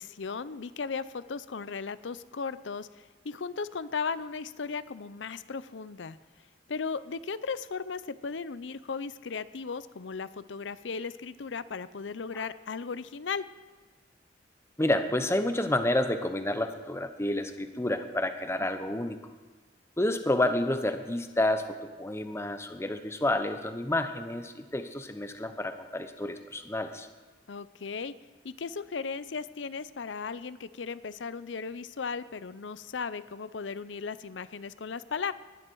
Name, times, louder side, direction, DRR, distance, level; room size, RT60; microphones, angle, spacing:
voice 1, 0.0-2.9 3.2-6.2 6.7-13.5 18.6-18.7 27.5-28.1 28.4-35.3, left 5 dB, 85° left, 15 dB, 0.6 m, -36 dB
voice 2, 14.8-19.2 20.0-27.1, left 1 dB, 15° left, 8 dB, 0.9 m, -29 dB
19.5 x 10.5 x 4.7 m, 1.3 s
head